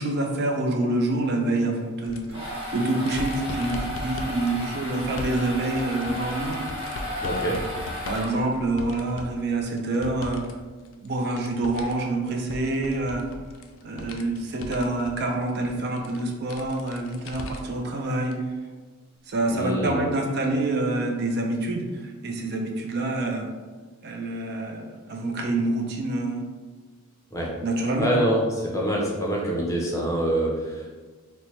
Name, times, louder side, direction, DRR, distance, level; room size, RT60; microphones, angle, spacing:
voice 1, 0.0-6.6 7.2-7.4 8.1-10.4 11.0-13.3 13.8-18.4 19.3-23.5 24.0-26.4 27.6-28.1, right 2 dB, 50° right, 2 dB, 0.4 m, -27 dB
sound 1, 2.0-10.5 10.8-17.8 18.2-18.3 19.5-19.6, left 2 dB, 60° left, 0.3 m, -39 dB
sound 2, 2.1-8.7, left 1 dB, 25° right, 0.9 m, -33 dB
voice 2, 7.2-7.6 19.5-20.0 27.3-27.5 28.0-30.9, right 1 dB, 15° left, -2 dB, 0.6 m, -25 dB
4.2 x 2.1 x 3.1 m, 1.4 s
head